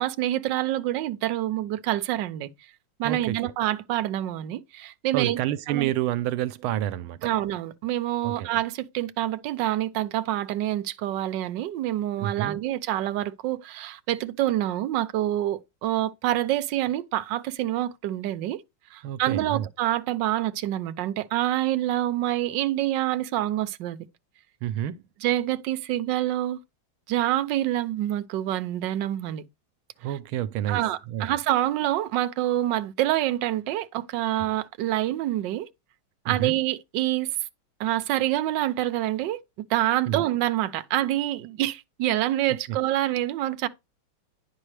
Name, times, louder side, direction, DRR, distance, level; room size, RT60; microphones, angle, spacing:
voice 1, 0.0-2.5 3.0-5.4 5.7-5.9 7.2-18.6 18.9-24.0 25.2-26.6 27.1-29.4 30.7-35.7 36.2-37.3 37.8-39.4 39.7-43.7, right 13 dB, 65° right, 1.3 m, -26 dB
voice 2, 3.0-3.4 5.1-7.2 8.2-8.5 12.2-12.6 19.0-19.7 24.6-25.0 30.0-31.4 34.4-34.5 36.3-36.5 40.1-40.2 42.7-42.8, right 12 dB, 90° right, 1.5 m, -29 dB
9.8 x 6.2 x 3.3 m
omnidirectional pair, 2.3 m